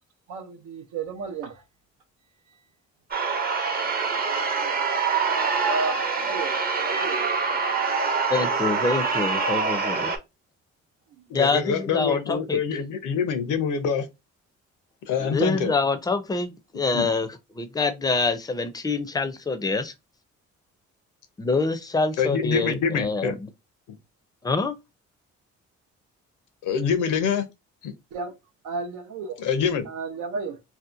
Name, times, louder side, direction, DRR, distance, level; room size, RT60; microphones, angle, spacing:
voice 1, 0.3-1.6 4.6-7.6 8.0-8.2 11.1-11.2 28.1-28.3 28.6-29.4 29.9-30.6, right 4 dB, 90° right, 0.5 m, -34 dB
sound 1, 3.1-10.2, right 5 dB, 30° right, 0.6 m, -25 dB
voice 2, 8.3-10.1 11.3-12.6 15.2-19.9 21.4-23.5 24.4-24.8, left 3 dB, 15° left, 0.4 m, -26 dB
voice 3, 11.3-14.0 15.1-15.7 16.9-17.1 22.2-23.4 26.6-27.4 27.8-27.9 29.4-29.8, left 6 dB, 85° left, 0.6 m, -25 dB
2.7 x 2.1 x 2.4 m
cardioid pair, 90°, 30 cm